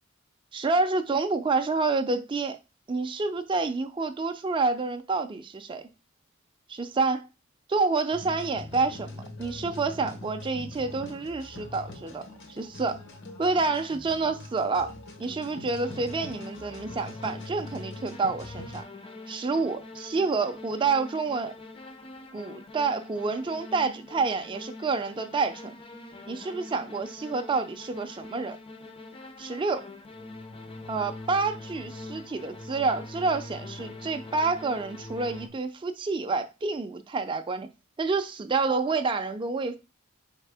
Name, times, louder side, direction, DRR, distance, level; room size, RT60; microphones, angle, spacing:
voice 1, 0.5-2.6 2.9-5.8 6.7-7.3 7.7-12.2 12.5-13.0 13.4-14.9 15.2-18.8 19.3-21.5 22.3-25.8 26.3-28.6 29.4-29.9 30.9-37.7 38.0-39.8, right 4 dB, 25° right, 0.4 m, -28 dB
sound 1, 8.1-18.8, left 2 dB, 60° left, 0.9 m, -43 dB
sound 2, 15.8-35.5, left 2 dB, 25° left, 0.5 m, -44 dB
4.1 x 3.6 x 3.4 m
head